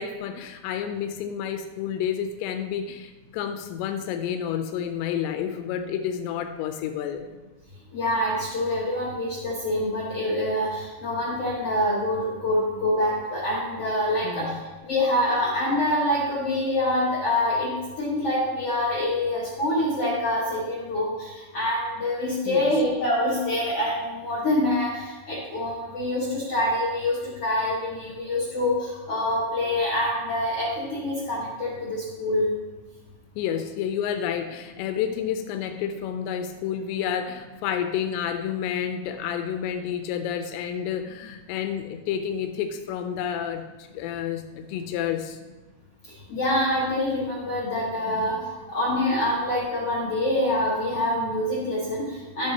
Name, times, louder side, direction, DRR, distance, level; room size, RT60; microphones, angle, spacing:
voice 1, 0.0-7.3 14.2-14.6 22.5-22.7 33.4-45.4 48.0-48.4, left 8 dB, 90° left, 6 dB, 2.9 m, -30 dB
voice 2, 7.9-14.5 14.8-32.5 46.3-52.5, left 1 dB, 60° left, -6 dB, 1.6 m, -26 dB
13.5 x 7.9 x 2.9 m, 1.2 s
omnidirectional pair, 5.0 m